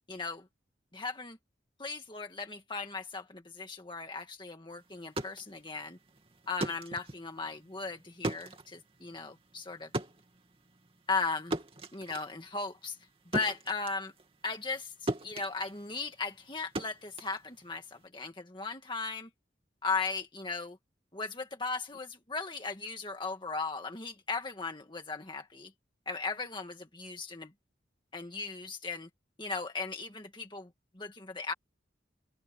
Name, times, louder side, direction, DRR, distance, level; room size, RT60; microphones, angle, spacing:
voice 1, 0.1-0.4 0.9-1.4 1.8-6.0 6.5-9.9 11.1-11.6 11.9-13.0 13.3-14.1 14.4-19.3 19.8-20.8 21.1-25.7 26.1-27.5 28.1-29.1 29.4-30.7 31.0-31.5, left 4 dB, 25° left, 1.9 m, -37 dB
sound 1, 4.9-14.8 15.1-18.0, right 1 dB, 30° right, 2.7 m, -39 dB
open air
head